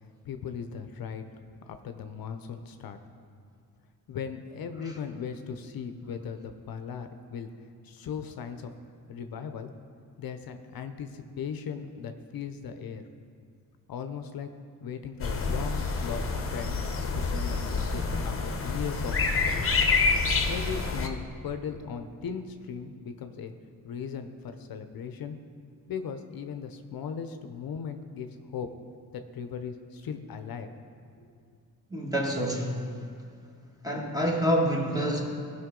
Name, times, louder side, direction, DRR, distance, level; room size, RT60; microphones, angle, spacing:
voice 1, 0.2-1.2 1.7-3.0 4.1-7.5 7.8-8.7 9.1-9.7 10.2-13.0 13.9-14.5 14.8-16.2 16.5-16.7 17.1-19.8 20.4-23.5 23.8-25.4 25.9-28.7 29.1-30.7 31.2-31.3, left 7 dB, 70° left, 8 dB, 0.6 m, -38 dB
sound 1, 15.2-21.1, left 4 dB, 35° left, 0.9 m, -27 dB
voice 2, 31.9-33.0 33.8-35.2, equal, 10° right, 0 dB, 1.5 m, -27 dB
15.5 x 5.7 x 3.7 m, 2.2 s
cardioid pair, 90°, 37 cm